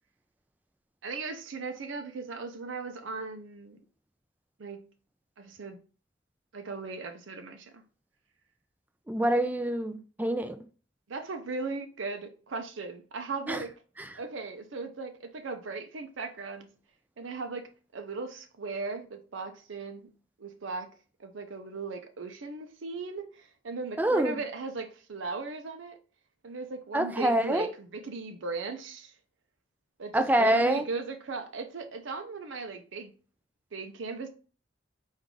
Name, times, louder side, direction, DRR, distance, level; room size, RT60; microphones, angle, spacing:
voice 1, 1.0-3.8 4.6-4.8 5.4-5.8 6.5-7.8 11.1-13.7 14.1-16.7 17.2-17.6 17.9-20.1 20.4-20.9 21.2-25.9 26.4-29.1 30.0-33.1 33.7-34.3, right 4 dB, 85° right, 0.6 m, -37 dB
voice 2, 9.1-10.6 13.5-13.6 14.0-14.2 24.0-24.4 26.9-27.7 30.1-30.8, right 1 dB, 10° right, 0.4 m, -26 dB
4.7 x 2.7 x 3.7 m
head